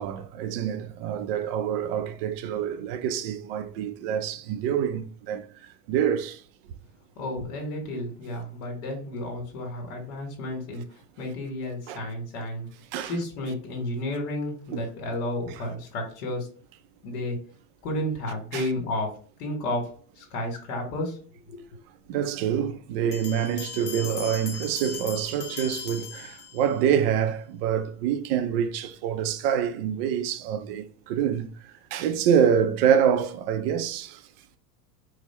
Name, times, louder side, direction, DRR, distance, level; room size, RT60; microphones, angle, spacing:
voice 1, 0.0-5.5 5.9-6.4 11.9-12.0 12.9-13.1 14.7-14.8 18.5-18.7 22.1-31.5 31.9-34.2, right 8 dB, 40° right, 0.4 m, -26 dB
voice 2, 7.2-12.7 13.0-16.5 17.0-17.4 17.8-19.1 19.4-19.9 20.2-21.2 21.5-21.6, left 1 dB, 70° left, 1.6 m, -32 dB
sound 1, 23.1-26.9, left 7 dB, 30° left, 0.3 m, -39 dB
4.6 x 2.1 x 4.2 m
supercardioid pair, 155°, 46 cm